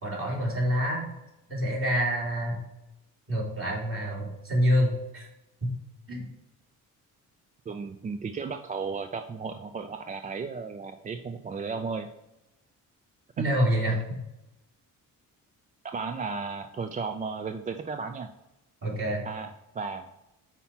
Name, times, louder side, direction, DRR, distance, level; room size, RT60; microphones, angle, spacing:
voice 1, 0.0-1.1 1.5-2.6 3.3-5.3 5.6-5.7 6.1-6.2 13.4-14.0 18.8-19.3, equal, 40° right, -3 dB, 2.7 m, -27 dB
voice 2, 7.7-12.1 13.4-13.5 15.8-18.3 19.2-19.5 19.7-20.1, right 5 dB, 25° right, 8 dB, 0.3 m, -34 dB
5.8 x 4.2 x 5.7 m, 0.92 s
cardioid pair, 110°, 34 cm